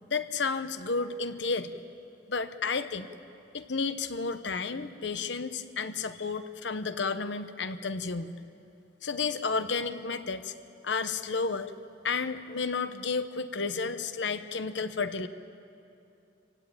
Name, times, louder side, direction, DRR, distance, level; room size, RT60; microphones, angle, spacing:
voice 1, 0.1-1.7 2.3-3.1 3.5-8.4 9.0-10.5 10.8-11.7 12.0-15.3, left 4 dB, 70° left, 11 dB, 1.0 m, -32 dB
28.5 x 16.0 x 9.0 m, 2.8 s
head